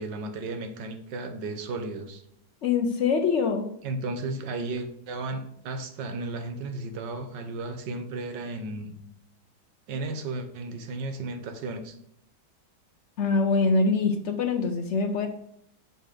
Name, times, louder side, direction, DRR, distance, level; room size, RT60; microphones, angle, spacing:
voice 1, 0.0-2.2 3.8-9.0 9.9-11.9, right 2 dB, 80° right, 7 dB, 1.6 m, -34 dB
voice 2, 2.6-3.7 13.2-15.3, left 4 dB, 60° left, 5 dB, 0.7 m, -24 dB
6.7 x 4.1 x 4.9 m, 0.70 s
omnidirectional pair, 1.9 m